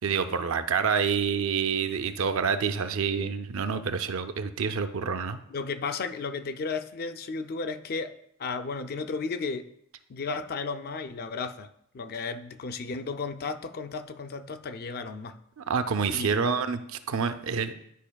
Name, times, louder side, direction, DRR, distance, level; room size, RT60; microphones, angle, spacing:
voice 1, 0.0-5.4 15.6-17.7, right 6 dB, 70° right, 9 dB, 0.5 m, -27 dB
voice 2, 5.5-8.1 8.4-9.7 10.1-11.7 11.9-15.3 16.1-16.5, left 4 dB, 50° left, 9 dB, 0.4 m, -34 dB
11.0 x 5.0 x 2.3 m, 0.73 s
head